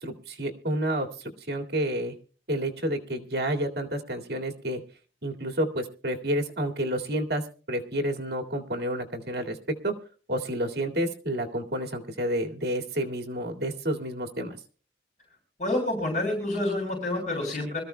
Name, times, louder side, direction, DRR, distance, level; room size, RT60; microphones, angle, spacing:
voice 1, 0.0-2.1 2.5-4.8 5.2-9.9 10.3-14.6, right 1 dB, 65° right, 4 dB, 2.1 m, -30 dB
voice 2, 15.6-17.8, left 1 dB, 45° left, 0 dB, 6.7 m, -28 dB
25.0 x 14.0 x 2.2 m, 0.38 s
head